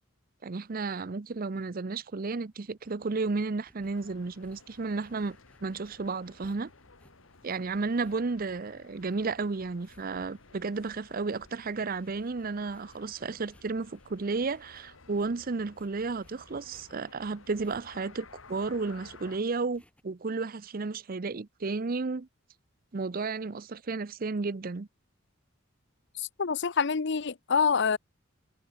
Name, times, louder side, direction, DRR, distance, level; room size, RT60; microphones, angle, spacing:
voice 1, 0.4-6.7 7.4-22.3 22.9-24.9, right 4 dB, 45° right, 0.6 m, -33 dB
sound 1, 1.4-20.0, equal, 5° left, 6.6 m, -66 dB
sound 2, 3.9-19.4, left 3 dB, 80° left, 2.3 m, -55 dB
voice 2, 26.2-28.0, left 5 dB, 60° left, 0.7 m, -26 dB
head